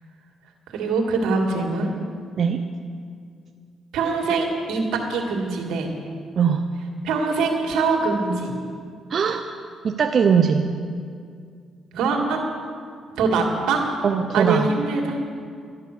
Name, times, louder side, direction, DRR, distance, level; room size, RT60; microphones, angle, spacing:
voice 1, 0.7-1.9 3.9-5.9 7.0-8.5 11.9-12.4 13.2-13.9 14.3-15.2, right 4 dB, 85° right, 1 dB, 2.1 m, -23 dB
voice 2, 6.4-6.7 9.1-9.5 9.8-10.7 14.0-14.7, right 6 dB, 50° right, 5 dB, 0.7 m, -20 dB
12.0 x 11.5 x 6.7 m, 2.2 s
cardioid pair, 90°, 0 cm